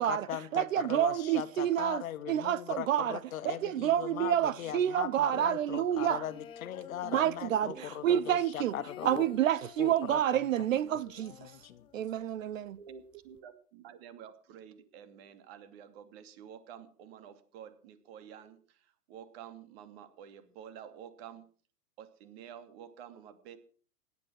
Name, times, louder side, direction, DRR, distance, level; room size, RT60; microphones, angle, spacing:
voice 1, 0.0-9.3 9.8-10.4 11.4-11.9, left 11 dB, 55° left, 1.8 m, -39 dB
voice 2, 0.5-3.2 3.4-6.2 7.0-8.7 9.0-11.5 11.9-12.8, right 11 dB, 55° right, 0.8 m, -29 dB
voice 3, 3.8-4.3 4.6-4.7 7.4-8.2 12.8-21.5 22.0-23.6, right 8 dB, 40° right, 2.6 m, -50 dB
sound 1, 5.8-8.0 8.3-12.2 12.5-12.6 12.9-13.4, left 9 dB, 10° left, 0.7 m, -50 dB
17.0 x 11.5 x 6.3 m
hypercardioid pair, 135°, 48 cm